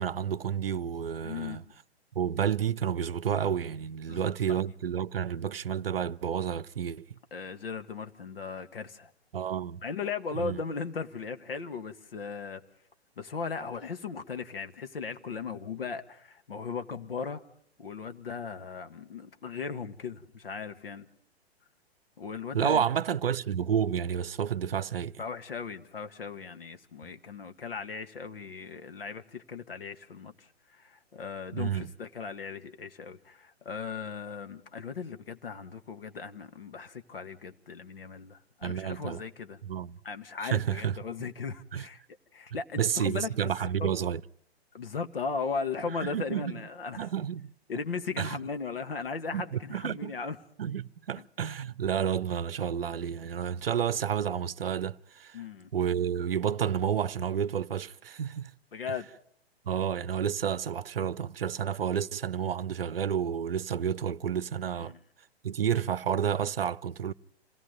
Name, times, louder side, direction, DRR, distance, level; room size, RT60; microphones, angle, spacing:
voice 1, 0.0-1.6 2.1-7.2 9.3-9.8 10.3-10.6 22.5-25.2 31.5-31.9 38.6-39.2 39.6-40.0 40.4-40.9 41.7-41.8 42.8-44.2 46.0-46.5 47.0-47.5 48.2-48.4 49.3-50.1 50.6-55.4 55.7-58.5 59.7-64.9 65.4-67.1, right 8 dB, 60° right, 0.7 m, -30 dB
voice 2, 1.2-1.6 4.1-4.6 7.3-9.1 9.8-12.6 13.2-17.4 17.8-21.1 22.2-22.8 25.2-39.6 40.0-42.0 42.3-43.3 43.8-43.9 44.7-47.1 47.7-50.4 51.2-51.3 55.3-55.7 58.7-59.1 64.7-65.0, left 5 dB, 60° left, 1.7 m, -37 dB
27.0 x 18.0 x 5.3 m
figure-of-eight pair, 120°, 32 cm